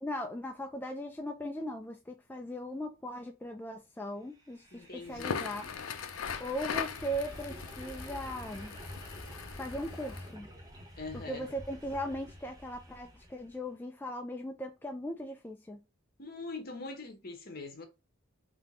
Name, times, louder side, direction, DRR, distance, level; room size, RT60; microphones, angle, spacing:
voice 1, 0.0-5.7 6.4-8.8 9.6-10.5 11.1-15.8, equal, 10° left, 0.3 m, -38 dB
sound 1, 4.4-13.6, equal, 20° right, 1.2 m, -48 dB
voice 2, 4.7-5.5 11.0-11.4 16.2-17.8, left 3 dB, 45° left, 1.1 m, -42 dB
Crackle, 5.1-10.3, left 6 dB, 75° left, 0.5 m, -40 dB
3.9 x 2.8 x 3.7 m
head